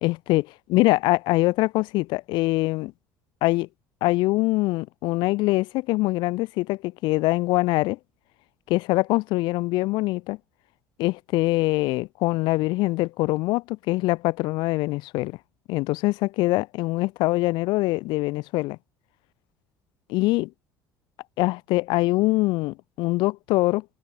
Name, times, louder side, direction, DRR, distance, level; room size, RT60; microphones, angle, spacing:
voice 1, 0.0-0.4 0.7-2.9 3.4-3.7 4.0-8.0 8.7-10.4 11.0-15.4 15.7-18.8 20.1-20.5 21.4-23.8, left 21 dB, 75° left, 3.0 m, -23 dB
supercardioid pair, 105°, 8 cm